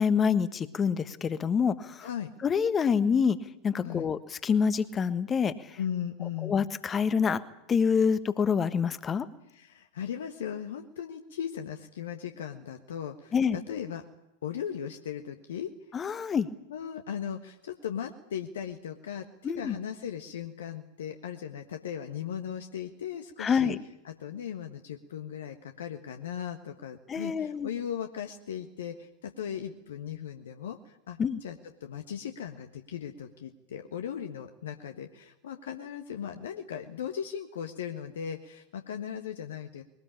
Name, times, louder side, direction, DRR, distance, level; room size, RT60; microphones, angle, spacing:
voice 1, 0.0-2.1 2.4-3.4 3.6-5.8 6.4-7.4 7.7-9.3 13.3-13.6 15.9-16.5 19.4-19.8 23.4-23.8 27.1-27.7 31.2-31.4, left 6 dB, 20° left, 13 dB, 1.4 m, -26 dB
voice 2, 2.0-2.3 3.8-4.1 5.8-6.6 9.5-14.0 14.4-15.7 16.7-23.7 24.0-39.8, left 8 dB, 60° left, 5 dB, 1.5 m, -38 dB
22.0 x 19.0 x 8.8 m, 0.84 s
figure-of-eight pair, 90°, 0 cm